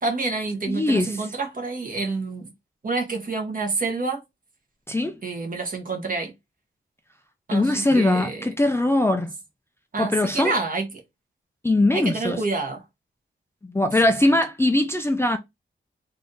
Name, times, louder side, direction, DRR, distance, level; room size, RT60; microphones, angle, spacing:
voice 1, 0.0-2.5 2.8-4.2 5.2-6.3 7.5-8.5 9.9-10.9 11.9-12.8, right 3 dB, 40° right, 1.4 m, -28 dB
voice 2, 0.7-1.3 4.9-5.1 7.5-9.3 10.0-10.5 11.6-12.4 13.7-15.4, left 2 dB, 10° left, 0.4 m, -21 dB
3.5 x 2.7 x 3.8 m
wide cardioid pair, 115°, 20 cm